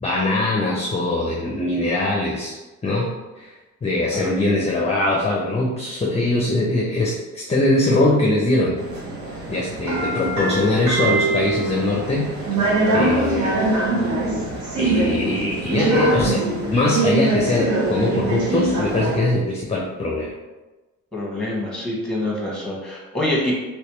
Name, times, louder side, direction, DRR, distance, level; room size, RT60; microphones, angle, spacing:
voice 1, 0.0-2.6 2.8-3.5 3.8-8.8 9.5-12.3 12.9-13.7 14.8-20.3, left 2 dB, 20° left, -1 dB, 0.6 m, -22 dB
sound 1, 8.8-19.2, right 2 dB, 70° right, 1.0 m, -23 dB
voice 2, 21.1-23.5, left 1 dB, ahead, -4 dB, 1.3 m, -25 dB
3.2 x 3.1 x 3.1 m, 1.2 s
cardioid pair, 90°, 30 cm